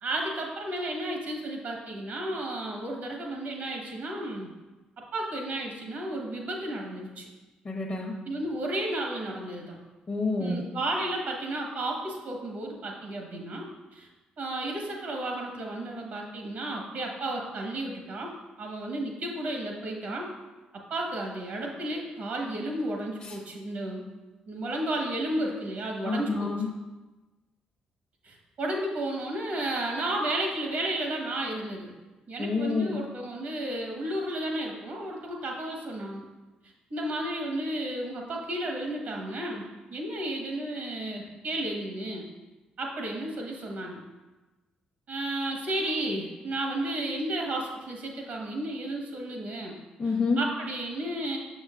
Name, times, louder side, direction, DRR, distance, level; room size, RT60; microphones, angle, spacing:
voice 1, 0.0-4.5 5.1-7.3 8.2-9.8 10.4-13.6 13.9-14.1 14.4-18.3 18.6-20.3 20.7-24.1 24.5-26.5 28.2-31.9 32.3-36.3 36.9-42.3 42.8-44.0 45.1-49.7 50.4-51.4, right 1 dB, 70° right, 0 dB, 1.2 m, -33 dB
voice 2, 7.6-8.1 10.1-10.6 23.2-23.4 26.0-26.7 32.4-32.9 50.0-50.4, left 3 dB, 30° left, -2 dB, 0.8 m, -28 dB
6.3 x 6.1 x 2.5 m, 1.2 s
supercardioid pair, 60°, 3 cm